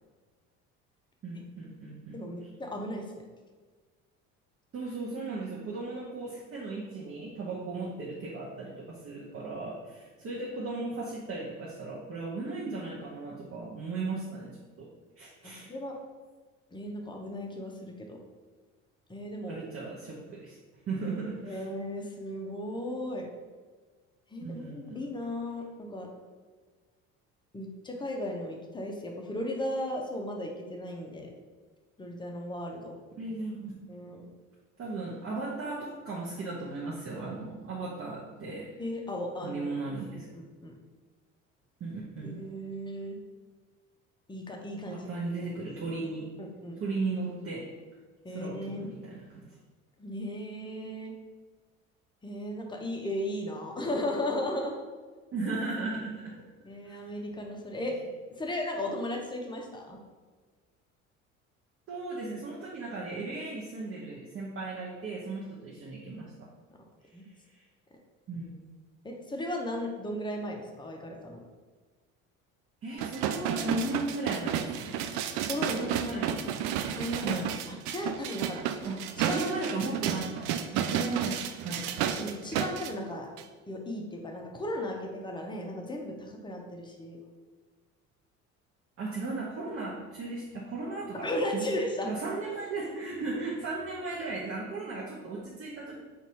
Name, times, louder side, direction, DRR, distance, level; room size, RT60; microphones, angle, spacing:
voice 1, 1.2-2.1 4.7-14.5 14.8-14.9 15.2-15.7 19.5-20.6 20.9-21.7 24.4-25.0 33.2-33.7 34.0-34.2 34.8-38.6 39.4-40.3 41.8-42.4 44.9-46.3 46.8-47.6 48.3-49.4 55.3-56.3 56.8-57.0 61.9-66.3 67.5-67.6 68.3-68.6 72.8-75.0 75.7-76.8 77.2-77.5 78.8-79.0 79.2-81.8 89.0-91.7 92.0-96.0, right 3 dB, 35° right, -5 dB, 0.9 m, -36 dB
voice 2, 2.1-3.0 7.7-7.9 15.4-15.9 16.7-18.2 19.1-19.6 21.4-23.3 24.3-26.1 27.5-31.3 32.0-32.9 33.9-34.3 38.8-40.7 42.2-43.2 44.3-45.1 45.4-45.5 46.4-46.8 48.2-48.9 50.0-51.1 52.2-54.8 56.6-57.9 58.4-60.0 67.1-67.2 69.0-71.5 75.5-76.1 77.0-78.6 79.2-79.4 82.2-83.3 83.7-87.2 91.2-92.1, left 1 dB, 10° left, 1 dB, 0.8 m, -36 dB
sound 1, 73.0-82.9 83.4-83.5, right 9 dB, 50° right, 0.4 m, -32 dB
4.1 x 2.7 x 4.7 m, 1.4 s
figure-of-eight pair, 60°, 41 cm